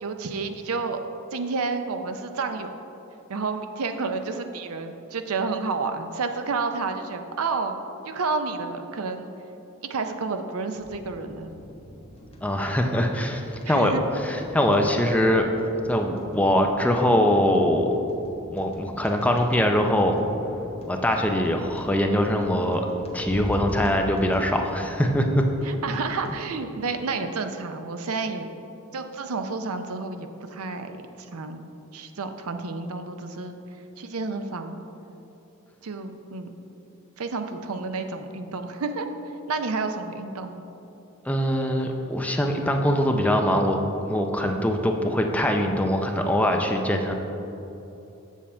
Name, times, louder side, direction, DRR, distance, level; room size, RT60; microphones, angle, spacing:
voice 1, 0.0-1.0 1.3-2.7 3.3-9.3 9.8-11.5 13.6-14.0 25.6-28.5 28.9-33.6 34.0-34.8 35.8-36.5 37.2-39.1 39.5-40.6, right 4 dB, 75° right, 7 dB, 0.6 m, -30 dB
sound 1, 10.7-26.3, equal, 25° left, 0.9 m, -41 dB
voice 2, 12.4-13.9 14.2-15.5 15.9-17.9 18.5-20.2 20.9-22.8 23.1-25.4 41.3-43.8 44.1-47.1, equal, 5° left, 3 dB, 0.5 m, -22 dB
7.3 x 7.0 x 4.3 m, 3.0 s
head